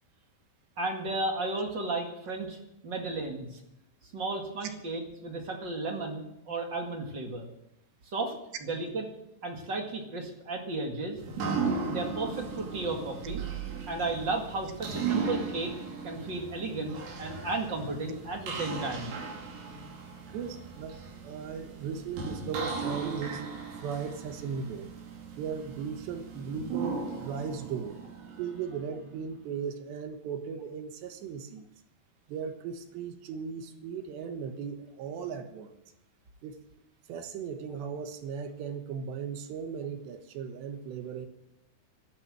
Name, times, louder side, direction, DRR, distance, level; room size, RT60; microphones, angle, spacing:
voice 1, 0.8-2.6 2.8-3.6 4.1-7.5 8.1-8.4 8.6-9.1 9.4-11.2 11.9-13.4 13.9-15.7 16.0-19.1, right 2 dB, 40° right, 2 dB, 1.8 m, -34 dB
sound 1, 11.2-29.0, right 5 dB, 60° right, 3.8 m, -37 dB
voice 2, 20.3-21.0 21.2-23.6 23.8-25.0 25.4-28.0 28.4-31.7 32.3-35.8 36.4-36.6 37.1-41.3, right 6 dB, 90° right, 7 dB, 3.6 m, -37 dB
12.5 x 11.5 x 7.6 m, 0.82 s
omnidirectional pair, 4.8 m